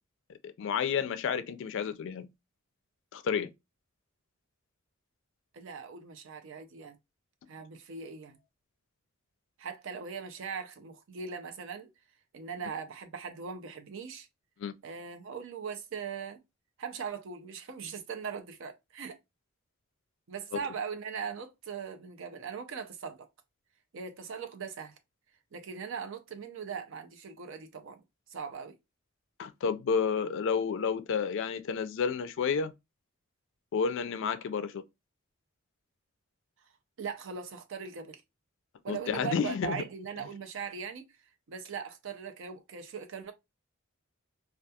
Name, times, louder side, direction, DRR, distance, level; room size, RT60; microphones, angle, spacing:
voice 1, 0.4-2.3 3.1-3.5 14.6-14.7 29.4-32.7 33.7-34.8 38.9-39.8, left 6 dB, 65° left, 0.3 m, -30 dB
voice 2, 5.5-7.0 7.5-8.4 9.6-11.9 12.3-14.3 14.8-16.4 16.8-19.2 20.3-23.2 23.9-24.9 25.5-28.0 28.3-28.7 37.0-38.2 38.8-41.0 41.5-43.3, right 6 dB, 65° right, 0.5 m, -40 dB
2.3 x 2.3 x 2.7 m
head